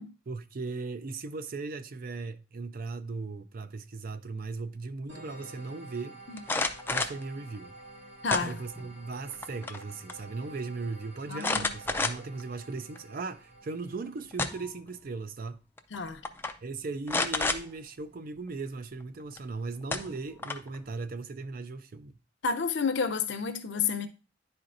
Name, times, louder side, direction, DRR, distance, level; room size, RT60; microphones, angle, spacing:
voice 1, 0.3-6.2 6.9-7.7 8.4-15.6 16.6-22.1, right 3 dB, 50° right, 0.5 m, -38 dB
sound 1, 5.1-14.5, right 2 dB, 90° right, 2.3 m, -50 dB
sound 2, 6.4-7.2 8.3-8.9 9.3-9.8 10.1-10.2 11.4-12.4 13.0-13.1 14.1-14.8 15.8-16.0 16.3-16.5 17.1-17.6 19.4-19.5 19.9-20.8, left 3 dB, 10° left, 0.4 m, -30 dB
voice 2, 8.2-8.6 11.3-11.7 15.9-16.2 22.4-24.1, left 5 dB, 65° left, 0.7 m, -30 dB
10.5 x 4.4 x 2.5 m
head